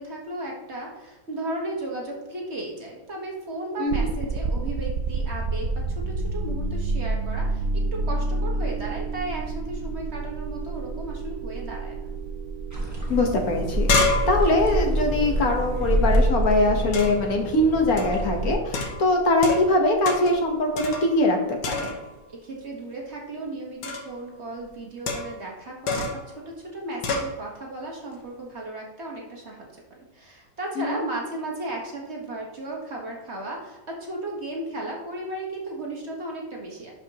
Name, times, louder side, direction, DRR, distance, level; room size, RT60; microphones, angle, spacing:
voice 1, 0.0-12.1 18.8-18.9 22.3-29.8 30.1-36.9, right 2 dB, 40° right, -1 dB, 1.5 m, -35 dB
voice 2, 3.8-4.1 13.1-21.9 30.8-31.0, left 2 dB, 60° left, 2 dB, 1.5 m, -22 dB
sound 1, 3.9-20.8, right 3 dB, 65° right, 0.9 m, -31 dB
sound 2, 12.7-18.6, right 1 dB, 10° right, 1.4 m, -26 dB
sound 3, 13.1-13.2 13.5-16.2 16.9-17.3 18.0-18.3 18.7-19.8 20.1-20.4 20.8-21.3 21.6-22.2 23.8-24.2 25.1-25.5 25.9-26.3 27.0-27.3, left 3 dB, 85° left, 1.6 m, -28 dB
11.5 x 5.2 x 2.9 m, 1.1 s
omnidirectional pair, 1.8 m